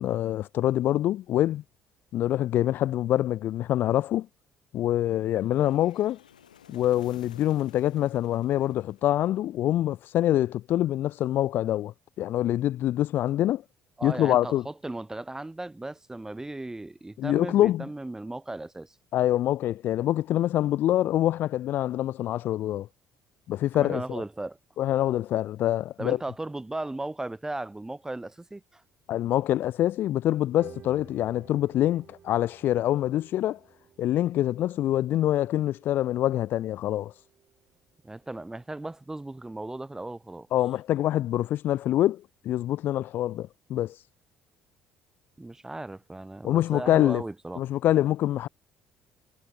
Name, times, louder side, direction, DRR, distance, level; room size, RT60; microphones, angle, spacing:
voice 1, 0.0-1.6 2.1-4.3 4.7-6.2 6.7-13.6 14.0-14.6 17.2-17.9 19.1-22.9 23.5-24.2 24.8-26.2 29.1-33.6 34.0-37.1 40.5-43.9 46.4-47.2 47.6-48.5, left 13 dB, 55° left, 0.4 m, -25 dB
sound 1, 5.4-9.7, left 9 dB, 85° left, 4.5 m, -53 dB
voice 2, 14.0-19.0 23.8-24.6 26.0-28.8 38.0-40.5 45.4-47.6, right 2 dB, 15° right, 1.2 m, -36 dB
sound 2, 30.6-41.1 41.3-42.1, right 8 dB, 45° right, 2.1 m, -55 dB
hypercardioid pair, 55°, 4 cm